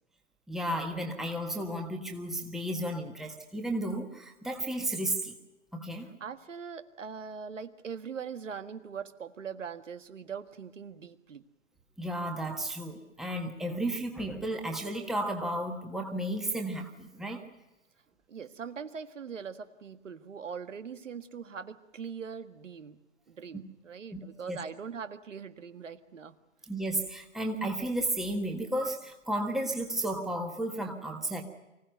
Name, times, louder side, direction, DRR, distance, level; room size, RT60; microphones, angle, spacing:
voice 1, 0.5-5.3 5.7-6.1 12.0-17.4 24.1-24.2 24.5-24.6 26.6-31.4, right 1 dB, ahead, 2 dB, 1.5 m, -33 dB
voice 2, 6.2-11.4 18.3-23.0 23.3-26.4, right 6 dB, 75° right, 10 dB, 1.7 m, -41 dB
25.0 x 16.5 x 9.2 m, 0.99 s
hypercardioid pair, 135°, 37 cm